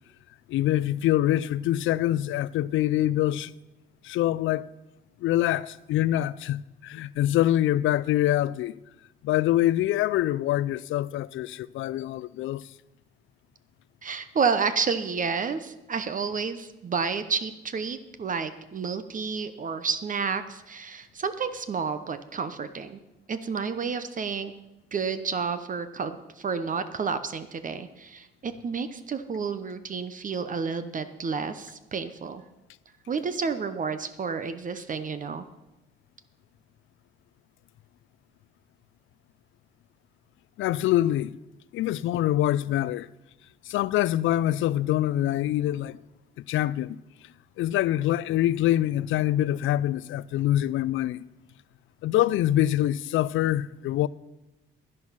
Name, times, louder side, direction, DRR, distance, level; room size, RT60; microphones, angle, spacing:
voice 1, 0.5-3.5 4.0-4.7 5.2-8.8 9.2-12.7 40.6-41.3 41.7-43.1 43.7-46.0 46.5-47.0 47.6-51.2 52.0-54.1, left 13 dB, 80° left, 0.5 m, -25 dB
voice 2, 14.0-23.0 23.3-24.5 24.9-32.4 33.1-35.4, right 5 dB, 40° right, 0.9 m, -30 dB
11.0 x 10.5 x 5.8 m
cardioid pair, 90°, 20 cm